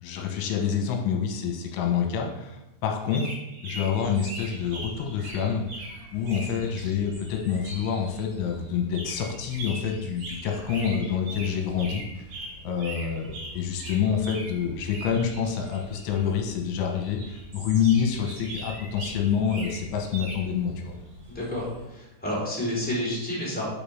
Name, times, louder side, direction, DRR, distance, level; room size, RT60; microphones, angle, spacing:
voice 1, 0.0-3.3 3.6-12.2 12.6-21.0, left 7 dB, 75° left, 2 dB, 3.3 m, -27 dB
sound 1, 3.0-8.2 8.9-16.3 16.9-17.5 17.8-20.5, right 1 dB, 65° right, 1.9 m, -41 dB
sound 2, 3.9-21.9, left 1 dB, 20° right, 2.0 m, -47 dB
voice 2, 21.3-23.6, left 1 dB, 5° left, -7 dB, 1.7 m, -30 dB
7.0 x 5.4 x 5.4 m, 0.93 s
omnidirectional pair, 5.8 m